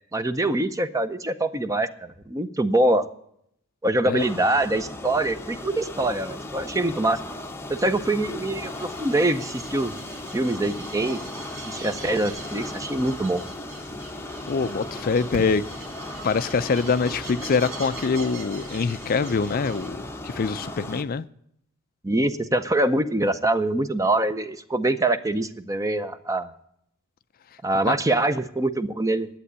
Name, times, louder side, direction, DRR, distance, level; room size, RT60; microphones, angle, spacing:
voice 1, 0.1-3.1 3.8-7.2 7.7-9.9 10.3-11.2 11.7-13.4 22.0-26.5 27.6-29.3, right 2 dB, 15° right, 0.6 m, -24 dB
sound 1, 4.2-21.0, left 2 dB, 10° left, 0.7 m, -37 dB
sound 2, 8.6-19.9, right 3 dB, 65° right, 2.2 m, -43 dB
voice 2, 14.5-15.6 16.2-21.2 27.8-27.9, left 5 dB, 40° left, 0.4 m, -24 dB
11.5 x 8.3 x 8.0 m
head